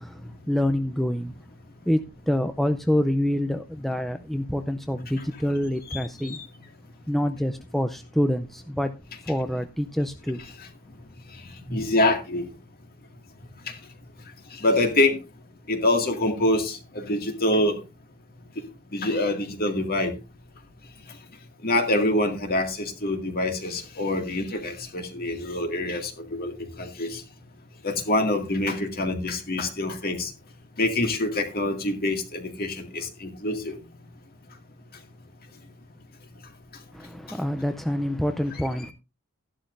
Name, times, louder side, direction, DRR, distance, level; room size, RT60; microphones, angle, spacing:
voice 1, 0.0-1.3 1.9-6.4 7.1-8.9 9.2-10.4 36.9-38.9, left 1 dB, ahead, 0.5 m, -26 dB
voice 2, 5.9-6.4 11.7-12.4 13.7-13.8 14.5-15.2 15.7-17.8 18.9-20.1 21.6-27.2 27.8-30.3 30.8-33.8, left 1 dB, 45° left, 2.1 m, -25 dB
14.0 x 11.0 x 2.6 m
head